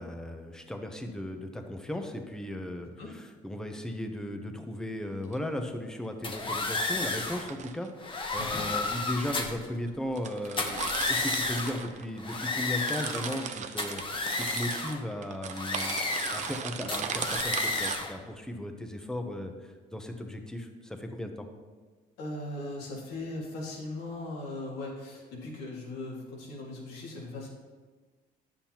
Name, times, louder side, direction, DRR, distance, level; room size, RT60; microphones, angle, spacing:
voice 1, 0.0-7.9 8.3-10.8 11.1-16.0 16.3-21.5, left 1 dB, 5° left, 5 dB, 0.8 m, -36 dB
sound 1, 5.1-5.4 7.2-7.9 8.7-8.8 9.5-9.6 9.9-10.0 10.2-12.4 12.7-18.0, right 7 dB, 45° right, 0.6 m, -37 dB
sound 2, 6.2-7.5 8.0-9.7 10.5-11.8 12.2-13.5 13.8-15.0 15.5-16.6 16.9-18.1, left 3 dB, 30° left, 0.9 m, -32 dB
voice 2, 8.4-8.7 22.2-27.5, left 2 dB, 90° left, -2 dB, 2.0 m, -39 dB
9.9 x 7.3 x 2.9 m, 1.4 s
cardioid pair, 110°, 17 cm